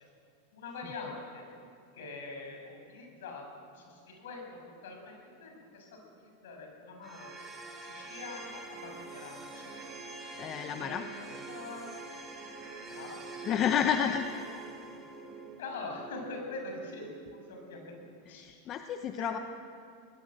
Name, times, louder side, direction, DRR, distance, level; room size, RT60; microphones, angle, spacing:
voice 1, 0.5-1.4 1.9-5.9 6.2-7.3 7.8-9.7 10.8-11.1 11.5-11.9 12.9-13.2 14.8-15.0 15.6-17.9 18.3-18.6 19.2-19.4, left 3 dB, 75° left, 2 dB, 7.0 m, -44 dB
sound 1, 7.0-18.1, right 3 dB, 25° right, 5.0 m, -45 dB
voice 2, 10.4-11.0 13.4-14.2 18.3-19.4, left 8 dB, 40° left, 7 dB, 1.0 m, -30 dB
22.5 x 19.5 x 7.7 m, 2.3 s
hypercardioid pair, 105°, 0 cm